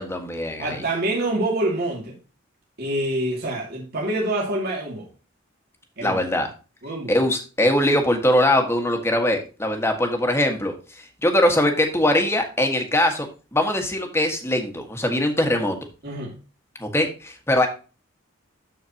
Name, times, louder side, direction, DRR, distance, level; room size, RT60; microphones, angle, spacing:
voice 1, 0.0-0.8 6.0-6.5 7.1-15.8 16.8-17.7, left 1 dB, 15° left, 1.5 m, -22 dB
voice 2, 0.6-2.1 2.8-5.1 6.0-6.2 6.8-7.1 16.0-16.4, right 1 dB, 55° right, 2.4 m, -26 dB
13.5 x 4.6 x 2.8 m
head